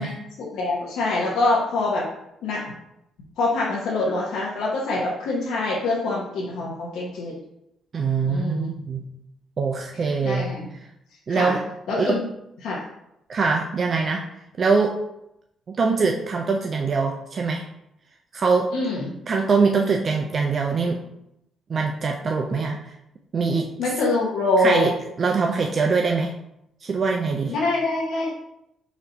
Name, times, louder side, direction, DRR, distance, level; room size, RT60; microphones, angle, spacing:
voice 1, 0.0-2.0 2.4-2.6 3.4-7.3 8.2-8.7 10.2-10.7 11.3-11.6 11.9-12.2 12.6-12.8 18.7-19.1 23.8-24.9 27.5-28.3, left 2 dB, 80° left, -5 dB, 0.8 m, -24 dB
voice 2, 7.9-9.1 9.6-10.5 11.3-11.6 12.0-12.2 13.3-14.2 14.6-15.0 15.7-17.7 18.3-18.7 19.3-21.0 21.7-22.9 23.3-23.7 24.6-24.9 25.2-26.3 26.8-27.5, right 4 dB, 45° right, 1 dB, 0.4 m, -23 dB
4.1 x 2.7 x 4.3 m, 0.82 s
cardioid pair, 90°, 0 cm